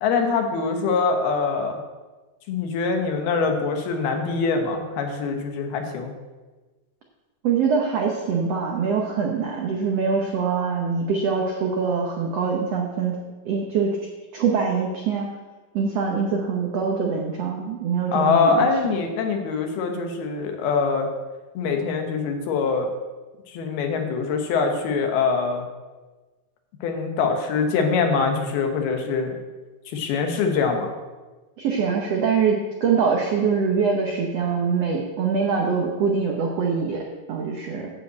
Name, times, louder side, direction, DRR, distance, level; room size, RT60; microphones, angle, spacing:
voice 1, 0.0-1.8 2.5-6.1 18.1-21.1 21.5-22.9 23.5-25.7 26.8-29.4 29.9-30.9, left 5 dB, 90° left, 4 dB, 3.2 m, -23 dB
voice 2, 7.4-13.2 13.4-14.0 14.3-15.3 15.7-18.7 31.6-37.0 37.3-37.9, right 5 dB, 85° right, 0 dB, 1.4 m, -23 dB
9.8 x 5.4 x 8.0 m, 1.3 s
omnidirectional pair, 4.3 m